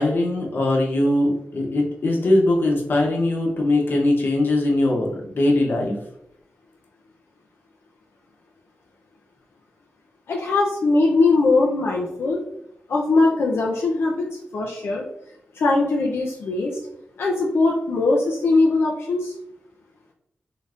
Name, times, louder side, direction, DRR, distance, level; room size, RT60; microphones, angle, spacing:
voice 1, 0.0-5.9, left 1 dB, 60° left, -1 dB, 1.0 m, -21 dB
voice 2, 10.3-12.4 12.9-15.0 15.5-16.7 17.2-19.3, left 3 dB, 90° left, -1 dB, 0.5 m, -20 dB
3.8 x 3.5 x 2.5 m, 0.77 s
wide cardioid pair, 150°, 4 cm